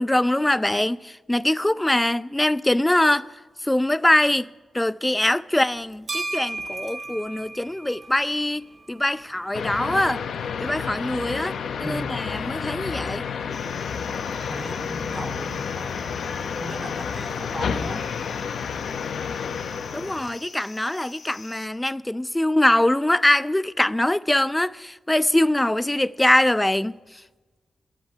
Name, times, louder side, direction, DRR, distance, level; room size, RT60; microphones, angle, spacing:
voice 1, 0.0-3.3 3.6-4.5 4.7-8.6 8.9-10.2 10.6-11.6 11.8-13.3 19.9-26.9, left 1 dB, 15° left, 0.4 m, -23 dB
sound 1, 5.7-19.6, right 2 dB, 45° right, 2.1 m, -41 dB
sound 2, 9.5-20.4, left 6 dB, 80° left, 0.7 m, -30 dB
voice 2, 11.8-12.3 14.4-16.2 16.6-18.1, right 1 dB, 30° right, 2.4 m, -37 dB
sound 3, 13.5-21.7, left 4 dB, 60° left, 1.1 m, -46 dB
12.5 x 8.0 x 10.0 m
cardioid pair, 50°, 0 cm